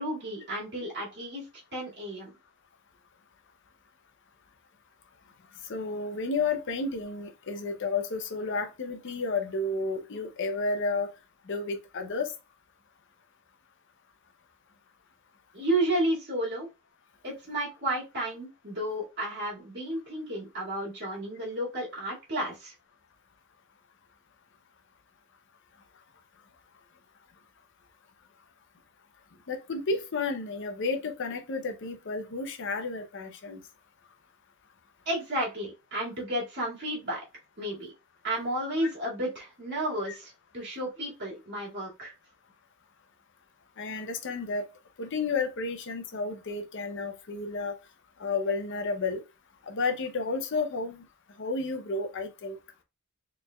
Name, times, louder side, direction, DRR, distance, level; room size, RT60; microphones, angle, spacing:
voice 1, 0.0-1.5 1.7-2.3 15.5-16.7 17.2-22.7 35.1-37.2 37.6-37.9 38.2-42.1, right 1 dB, 55° right, 2.1 m, -32 dB
voice 2, 5.7-11.1 11.5-12.3 29.5-33.6 43.8-44.6 45.0-47.7 48.2-49.2 49.6-51.0 51.4-52.6, left 3 dB, 60° left, 0.6 m, -31 dB
4.2 x 3.3 x 2.2 m
head